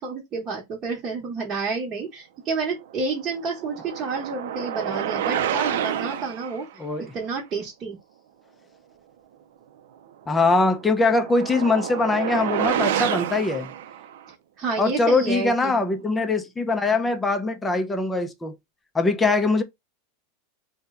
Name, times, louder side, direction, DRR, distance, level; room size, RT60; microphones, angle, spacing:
voice 1, 0.0-6.7 7.0-8.0 14.6-15.8, right 4 dB, 30° right, 1.0 m, -29 dB
sound 1, 3.0-6.6 10.5-14.3, right 10 dB, 75° right, 0.4 m, -28 dB
voice 2, 6.8-7.1 10.3-13.7 14.8-18.5 18.9-19.6, left 3 dB, 10° left, 0.4 m, -22 dB
2.8 x 2.1 x 3.5 m
supercardioid pair, 140°, 0 cm